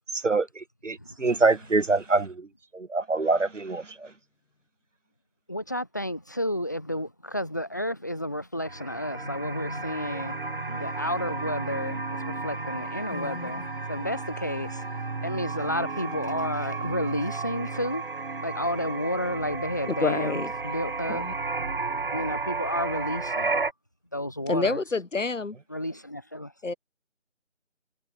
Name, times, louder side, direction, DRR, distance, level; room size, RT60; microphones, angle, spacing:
voice 1, 0.2-2.5 2.7-3.8, right 3 dB, 80° right, 1.4 m, -25 dB
voice 2, 1.0-1.4 5.5-10.4 10.6-14.8 15.2-18.1 18.4-21.2 22.1-23.6 24.1-24.8 25.7-26.5, equal, 15° left, 1.0 m, -31 dB
sound 1, 8.6-23.7, right 3 dB, 45° right, 1.3 m, -33 dB
voice 3, 13.1-13.7 19.8-20.5 21.1-21.3 24.5-25.6 26.6-26.7, left 4 dB, 85° left, 1.1 m, -28 dB
figure-of-eight pair, 165°, 37 cm